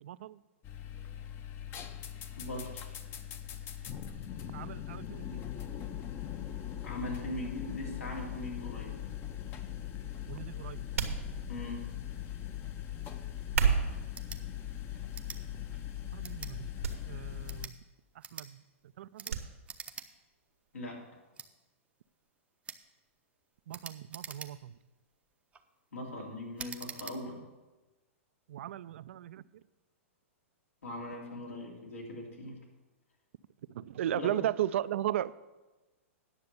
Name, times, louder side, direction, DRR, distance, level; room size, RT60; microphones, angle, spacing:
voice 1, 0.0-0.4 4.5-5.5 10.3-10.8 16.1-16.7 17.1-17.7 18.3-18.6 19.0-19.4 23.7-24.7 28.5-29.4 33.7-35.3, right 12 dB, 65° right, 17 dB, 0.4 m, -36 dB
sound 1, 0.6-17.7, left 10 dB, 30° left, 0.7 m, -41 dB
voice 2, 2.4-2.9 6.8-9.0 11.5-11.8 20.7-21.0 25.9-27.4 30.8-32.6 34.1-34.4, left 1 dB, 85° left, -2 dB, 3.0 m, -40 dB
sound 2, 10.9-11.8 13.4-14.1 14.9-15.2 15.7-15.8 16.8-17.0 17.3-17.4 19.3-19.5 19.8-19.9, right 6 dB, 85° right, 1.2 m, -30 dB
sound 3, 14.1-14.4 15.1-15.4 16.2-16.5 17.3-17.8 18.2-18.5 19.2-19.4 19.7-20.1 20.4-20.5 21.3-21.5 22.6-22.8 23.7-24.8 25.3-25.6 26.6-27.2, right 6 dB, 15° right, 0.6 m, -45 dB
9.7 x 6.7 x 6.8 m, 1.1 s
hypercardioid pair, 120°, 7 cm